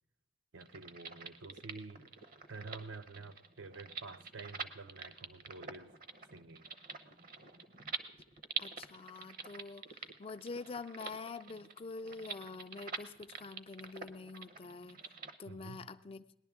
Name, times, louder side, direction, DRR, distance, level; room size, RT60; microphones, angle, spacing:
voice 1, 0.5-2.1 2.5-6.0 6.3-6.7 15.5-15.9, right 3 dB, 80° right, 0.7 m, -49 dB
sound 1, 0.6-15.3, right 5 dB, 45° right, 0.7 m, -46 dB
voice 2, 8.6-15.0 15.4-16.2, left 4 dB, 30° left, 0.4 m, -46 dB
19.5 x 11.0 x 3.6 m
head